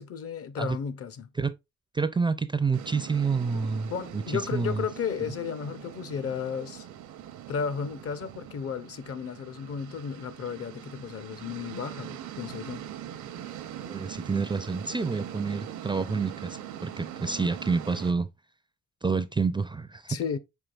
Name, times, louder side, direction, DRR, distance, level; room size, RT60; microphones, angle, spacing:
voice 1, 0.0-1.3 3.9-6.9 7.5-12.8 20.1-20.4, left 7 dB, 50° left, 0.7 m, -34 dB
voice 2, 1.9-4.2 4.5-4.8 13.9-18.3 19.0-20.2, right 4 dB, 15° right, 0.4 m, -28 dB
sound 1, 2.7-18.1, right 10 dB, 70° right, 0.7 m, -42 dB
4.8 x 4.6 x 2.3 m
cardioid pair, 90°, 30 cm